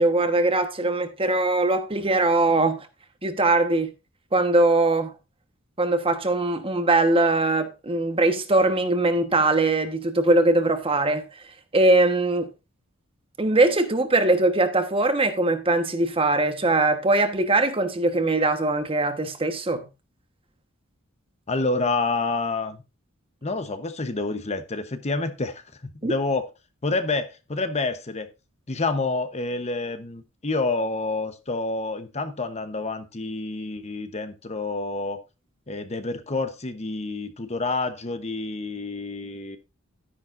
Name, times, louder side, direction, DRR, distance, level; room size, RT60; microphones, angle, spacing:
voice 1, 0.0-2.9 3.2-3.9 4.3-5.1 5.8-11.3 11.7-12.5 13.4-19.9 26.0-26.1, right 2 dB, 25° right, 1.2 m, -21 dB
voice 2, 21.5-22.8 23.4-26.5 26.8-28.3 28.7-35.2 35.7-39.6, left 3 dB, 30° left, 0.9 m, -28 dB
12.0 x 10.0 x 2.5 m
head